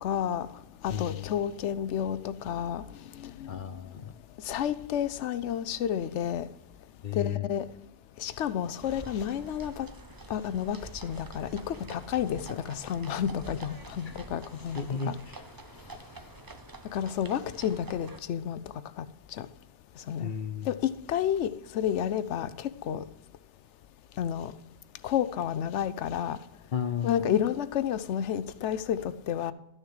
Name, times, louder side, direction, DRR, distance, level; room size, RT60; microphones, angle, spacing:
voice 1, 0.0-0.5 0.8-2.8 3.2-3.5 4.5-6.4 7.2-7.6 8.2-9.9 10.3-10.8 11.0-15.2 16.9-18.6 19.4-19.5 20.1-20.3 20.7-20.8 21.1-23.0 24.2-24.5 25.0-26.4 27.0-29.5, left 9 dB, 80° left, 14 dB, 0.9 m, -30 dB
voice 2, 0.9-1.3 3.5-4.1 7.0-7.5 14.1-14.2 14.7-15.4 20.2-20.7 26.7-27.2, left 8 dB, 55° left, 11 dB, 0.7 m, -33 dB
sound 1, 8.8-18.2, right 3 dB, 25° right, 0.5 m, -47 dB
13.0 x 6.5 x 4.8 m, 0.84 s
omnidirectional pair, 1.2 m